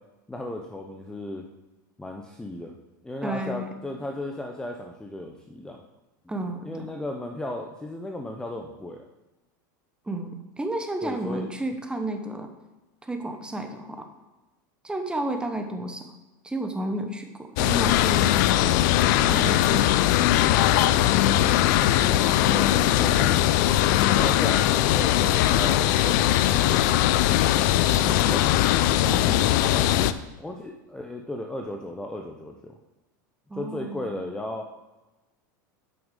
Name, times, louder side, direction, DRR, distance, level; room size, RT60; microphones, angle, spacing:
voice 1, 0.3-1.5 2.0-2.7 3.0-5.8 6.6-9.1 11.0-11.5 21.8-23.4 24.1-26.8 28.3-28.4 29.7-30.1 30.4-32.8 33.6-34.7, left 1 dB, 5° left, 2 dB, 0.6 m, -35 dB
voice 2, 3.2-3.7 6.3-6.9 10.1-12.5 13.0-14.1 14.8-16.1 16.4-18.8 19.3-20.1 20.5-21.4 27.9-28.5 29.0-29.5 33.5-34.2, right 1 dB, 10° right, 6 dB, 0.9 m, -32 dB
sound 1, 17.6-30.1, left 13 dB, 65° left, 0.4 m, -20 dB
8.6 x 6.1 x 3.8 m, 1.1 s
supercardioid pair, 110°, 11 cm